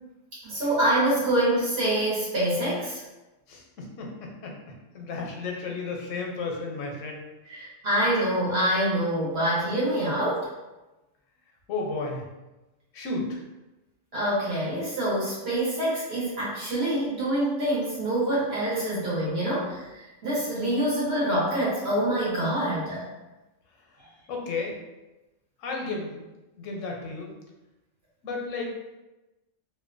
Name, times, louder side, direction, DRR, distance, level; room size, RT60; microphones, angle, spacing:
voice 1, 0.4-3.0 7.5-10.5 14.1-23.1, right 1 dB, 60° right, -8 dB, 1.1 m, -26 dB
voice 2, 3.5-4.6 4.9-7.2 11.7-12.2 12.9-13.4 24.3-24.8 25.6-26.2 26.6-27.3 28.2-29.0, left 3 dB, 85° left, 0 dB, 0.9 m, -33 dB
2.6 x 2.1 x 2.5 m, 1.0 s
omnidirectional pair, 1.3 m